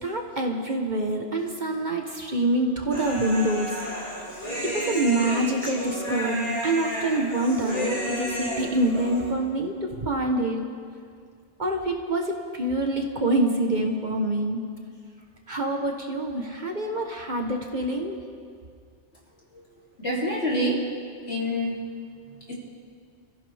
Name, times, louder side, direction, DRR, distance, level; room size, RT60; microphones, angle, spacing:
voice 1, 0.0-3.8 4.4-10.7 11.6-14.7 15.5-18.2, right 1 dB, 40° right, 2 dB, 1.3 m, -26 dB
Human voice, 2.9-9.3, equal, 40° left, 5.2 m, -31 dB
voice 2, 20.0-20.9 21.3-21.9 22.5-22.6, equal, 60° left, -4 dB, 3.4 m, -27 dB
27.5 x 15.0 x 3.5 m, 2.2 s
omnidirectional pair, 1.2 m